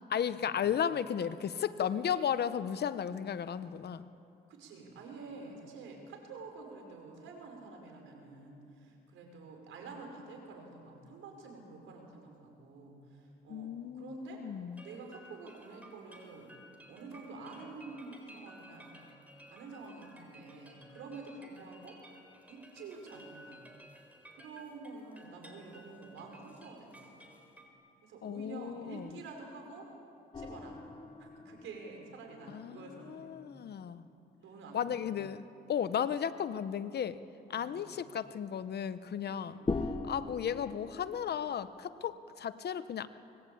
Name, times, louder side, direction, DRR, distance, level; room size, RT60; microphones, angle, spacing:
voice 1, 0.0-4.1 13.5-14.8 28.2-29.1 32.5-34.1 34.7-35.4 35.7-37.2 37.5-39.6 40.0-43.1, left 8 dB, 55° left, 13 dB, 1.0 m, -35 dB
voice 2, 4.5-14.4 14.8-16.5 16.9-18.9 19.5-22.0 22.5-23.6 24.4-27.1 28.0-29.9 30.4-30.8 31.2-33.3 34.4-35.0 37.5-37.9 39.2-39.8, right 3 dB, 80° right, 2 dB, 5.7 m, -48 dB
sound 1, 14.7-27.7, equal, 5° right, 4.1 m, -56 dB
sound 2, 30.3-33.8 34.1-34.2 39.7-42.0, left 3 dB, 25° left, 1.2 m, -41 dB
24.5 x 21.0 x 8.7 m, 2.7 s
cardioid pair, 90°, 20 cm